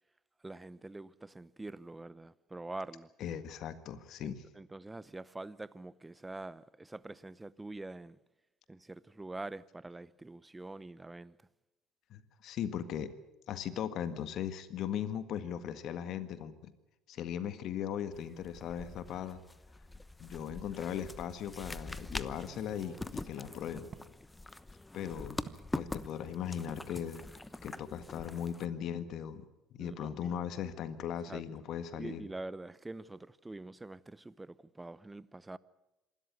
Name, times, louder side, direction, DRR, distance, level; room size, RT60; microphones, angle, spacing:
voice 1, 0.4-3.1 4.2-8.2 8.7-11.4 29.8-30.3 31.3-31.4 32.0-35.6, right 2 dB, 15° right, 0.9 m, -45 dB
voice 2, 3.2-4.4 12.1-13.1 13.5-16.7 17.1-19.4 20.2-23.9 24.9-25.4 25.7-27.3 27.6-29.5 29.7-32.2, left 9 dB, 60° left, 1.7 m, -38 dB
sound 1, 18.1-28.7, left 2 dB, 15° left, 1.1 m, -44 dB
sound 2, 22.1-24.1 25.4-25.7 26.7-26.9 27.3-27.6 27.9-28.0, right 6 dB, 40° right, 2.0 m, -53 dB
26.5 x 13.0 x 9.5 m
hypercardioid pair, 65°, 0 cm